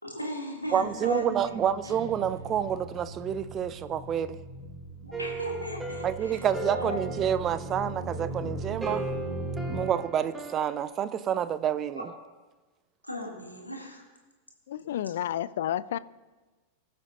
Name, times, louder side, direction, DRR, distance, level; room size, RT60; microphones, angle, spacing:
voice 1, 0.0-1.6 5.0-7.0 13.0-14.0, left 1 dB, 85° left, 2.2 m, -37 dB
sound 1, 0.7-9.8, right 1 dB, 30° left, 4.1 m, -39 dB
voice 2, 0.7-4.4 6.0-9.0 9.7-12.1, right 9 dB, 30° right, 0.5 m, -28 dB
Guitar, 1.8-5.0, right 3 dB, 75° right, 2.3 m, -46 dB
sound 2, 5.1-10.8, right 3 dB, 10° right, 1.1 m, -38 dB
voice 3, 14.7-16.0, left 11 dB, 60° left, 0.3 m, -30 dB
20.0 x 7.6 x 2.8 m
figure-of-eight pair, 90°, 0 cm